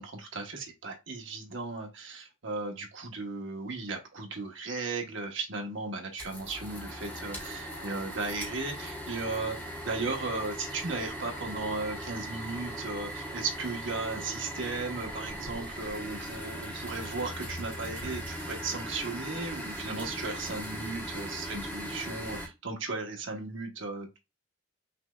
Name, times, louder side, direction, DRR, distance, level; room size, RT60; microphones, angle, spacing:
voice 1, 0.0-24.2, right 3 dB, 65° right, 1.1 m, -36 dB
sound 1, 6.2-22.5, equal, 10° left, 1.0 m, -39 dB
5.7 x 3.3 x 2.3 m
head